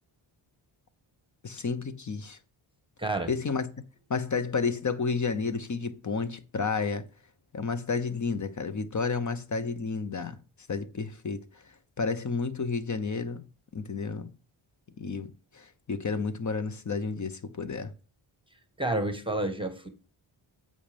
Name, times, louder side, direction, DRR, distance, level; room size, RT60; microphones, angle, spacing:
voice 1, 1.4-2.4 3.3-3.7 4.1-7.1 7.5-10.4 10.7-11.4 12.0-13.4 13.7-14.3 15.0-17.9, left 4 dB, 35° left, 0.9 m, -31 dB
voice 2, 3.0-3.3 18.8-19.9, right 2 dB, 10° right, 1.3 m, -29 dB
8.6 x 5.5 x 5.2 m
cardioid pair, 70°, 50 cm